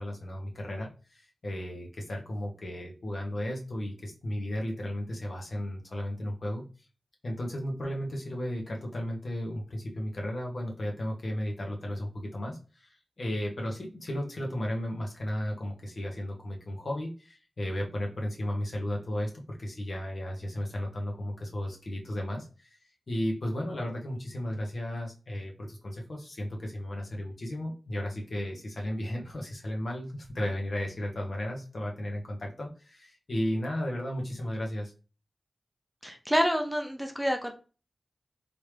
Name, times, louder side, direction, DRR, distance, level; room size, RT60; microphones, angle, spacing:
voice 1, 0.0-6.6 7.2-22.8 23.1-34.9, left 1 dB, 65° left, 0 dB, 1.1 m, -34 dB
voice 2, 36.0-37.5, equal, 5° right, 4 dB, 0.6 m, -28 dB
3.4 x 2.7 x 3.3 m, 0.34 s
cardioid pair, 45°, 0 cm